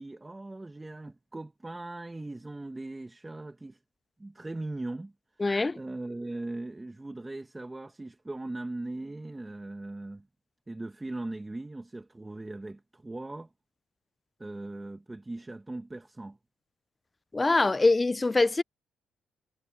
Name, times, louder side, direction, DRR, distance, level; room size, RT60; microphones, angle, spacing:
voice 1, 0.0-3.8 4.2-5.1 5.8-10.3 10.7-13.5 14.4-16.4, right 2 dB, 15° right, 1.8 m, -39 dB
voice 2, 5.4-5.8 17.3-18.6, left 3 dB, 20° left, 0.5 m, -23 dB
cardioid pair, 90°, 0 cm